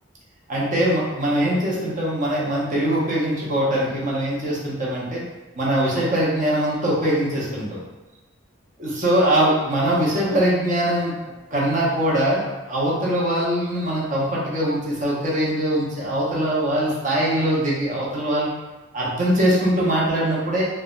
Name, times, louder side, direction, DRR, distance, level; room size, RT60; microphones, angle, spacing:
voice 1, 0.5-5.2 5.6-7.8 8.8-11.1 11.5-18.5 18.9-20.7, right 1 dB, 40° right, -5 dB, 0.7 m, -22 dB
3.2 x 2.1 x 2.4 m, 1.1 s
head